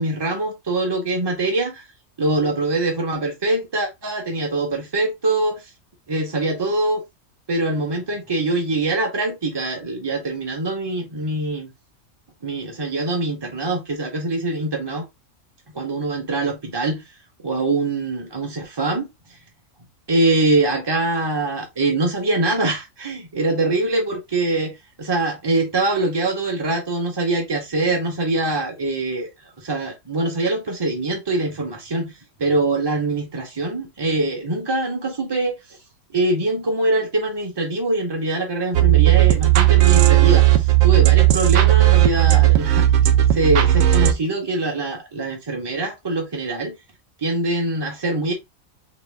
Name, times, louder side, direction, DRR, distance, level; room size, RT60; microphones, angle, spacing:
voice 1, 0.0-1.9 2.2-5.6 6.1-7.0 7.5-11.7 12.4-15.0 15.7-17.0 17.4-19.1 20.1-29.3 29.6-32.1 32.4-35.6 36.1-42.9 43.3-46.7 47.2-48.3, right 2 dB, 25° right, 0.6 m, -23 dB
sound 1, 38.7-44.1, right 14 dB, 80° right, 1.0 m, -15 dB
4.1 x 2.8 x 3.3 m
omnidirectional pair, 1.4 m